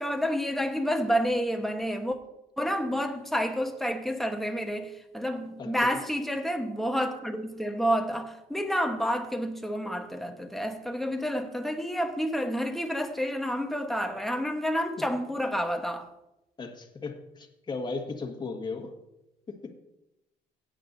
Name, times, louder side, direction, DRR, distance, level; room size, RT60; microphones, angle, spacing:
voice 1, 0.0-2.2 2.6-16.1, equal, ahead, 1.2 m, -29 dB
voice 2, 5.6-6.0 15.0-15.1 16.6-18.9 19.5-19.8, left 3 dB, 25° left, 1.7 m, -36 dB
16.5 x 9.0 x 2.7 m
cardioid pair, 110°, 17 cm